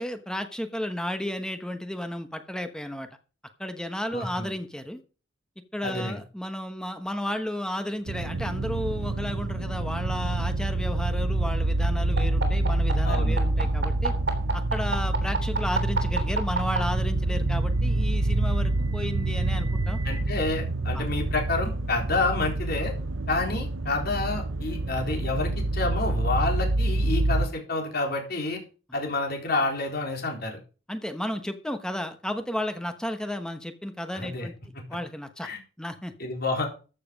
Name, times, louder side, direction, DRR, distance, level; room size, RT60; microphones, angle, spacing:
voice 1, 0.0-3.1 3.6-5.0 5.7-14.1 14.5-20.0 20.9-21.1 30.9-34.5 34.9-35.5 35.8-36.1, left 1 dB, 5° left, 7 dB, 1.1 m, -33 dB
voice 2, 4.1-4.5 5.8-6.2 13.0-13.4 20.0-22.9 23.3-28.6 28.9-30.6 34.1-34.5 35.4-35.6 36.2-36.7, left 3 dB, 50° left, 2 dB, 4.1 m, -29 dB
sound 1, 8.1-27.5, right 2 dB, 80° right, 0.8 m, -27 dB
sound 2, 12.2-16.8 17.9-20.2, right 4 dB, 55° right, 3.4 m, -31 dB
14.5 x 7.7 x 5.2 m, 0.35 s
head